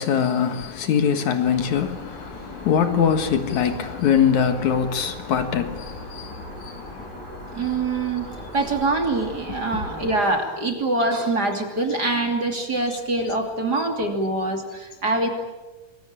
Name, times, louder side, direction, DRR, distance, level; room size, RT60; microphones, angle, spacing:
voice 1, 0.0-7.7 8.4-8.5 9.7-9.8, left 8 dB, 65° left, 2.8 m, -23 dB
sound 1, 1.4-10.2, left 1 dB, 15° right, 8.0 m, -39 dB
voice 2, 7.5-15.3, right 2 dB, 30° right, 3.2 m, -24 dB
27.0 x 22.0 x 8.9 m
omnidirectional pair, 3.6 m